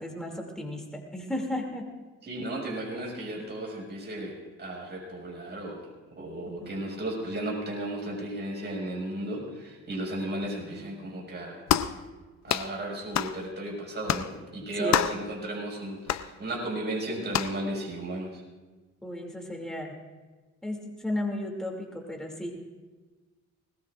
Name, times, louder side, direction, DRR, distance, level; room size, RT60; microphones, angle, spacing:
voice 1, 0.0-1.9 6.5-6.9 10.6-10.8 14.8-15.1 19.0-19.9 20.6-22.6, left 1 dB, ahead, 0 dB, 2.7 m, -34 dB
voice 2, 2.2-5.9 6.1-11.7 12.4-18.4, right 1 dB, 35° right, -2 dB, 5.9 m, -34 dB
sound 1, 11.7-12.0 12.5-12.7 13.1-13.4 14.1-14.3 14.9-15.2 16.1-16.3 17.3-17.6, left 10 dB, 60° left, 0.7 m, -26 dB
21.0 x 20.0 x 2.5 m, 1.3 s
cardioid pair, 90°, 30 cm